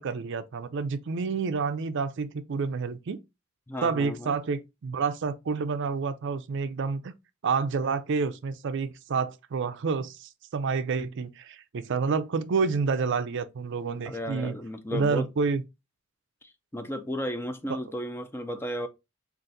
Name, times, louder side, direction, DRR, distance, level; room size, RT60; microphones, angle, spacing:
voice 1, 0.0-3.2 3.8-7.1 7.4-14.5 14.9-15.6, right 5 dB, 60° right, 0.4 m, -29 dB
voice 2, 3.7-4.4 14.0-15.3 16.4-18.9, equal, 10° left, 0.4 m, -34 dB
3.9 x 2.5 x 3.8 m
head